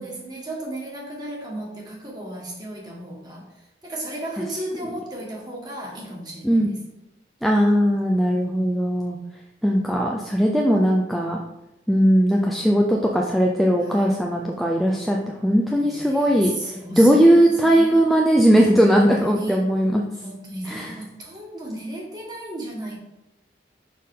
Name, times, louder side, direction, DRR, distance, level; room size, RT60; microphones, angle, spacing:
voice 1, 0.0-3.4 3.8-6.8 8.1-8.4 13.8-14.2 15.8-18.0 19.2-19.6 20.2-23.0, right 1 dB, 20° right, -2 dB, 1.6 m, -34 dB
voice 2, 7.4-9.2 9.6-11.4 11.9-20.0 20.7-20.9, equal, ahead, -1 dB, 0.4 m, -19 dB
6.5 x 5.6 x 3.7 m, 0.93 s
head